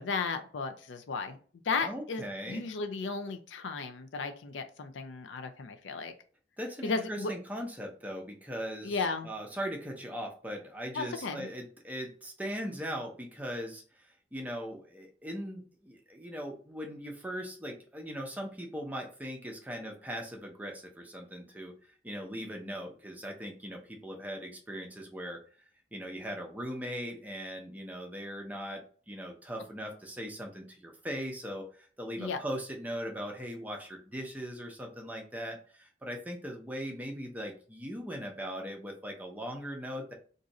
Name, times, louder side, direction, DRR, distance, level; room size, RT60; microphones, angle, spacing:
voice 1, 0.0-1.4 1.6-6.1 6.8-7.3 8.8-9.3 10.9-11.5 32.2-32.4, left 4 dB, 85° left, 7 dB, 0.5 m, -34 dB
voice 2, 1.8-2.7 6.6-9.0 9.2-21.7 22.0-25.4 25.9-40.1, equal, 10° right, 1 dB, 0.6 m, -39 dB
2.6 x 2.4 x 4.0 m, 0.42 s
head